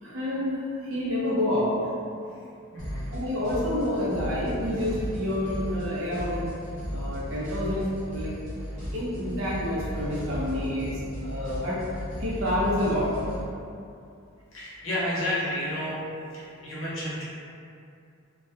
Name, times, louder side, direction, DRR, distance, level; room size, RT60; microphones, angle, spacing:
voice 1, 0.0-1.9 3.1-6.5 6.9-8.3 8.9-11.8 12.2-13.1, left 1 dB, 65° right, -7 dB, 0.6 m, -28 dB
voice 2, 2.7-3.1 14.5-16.0 16.3-17.2, left 1 dB, 65° left, -8 dB, 0.8 m, -31 dB
sound 1, 2.8-13.4, equal, 35° right, 0.9 m, -35 dB
2.2 x 2.1 x 2.7 m, 2.5 s
head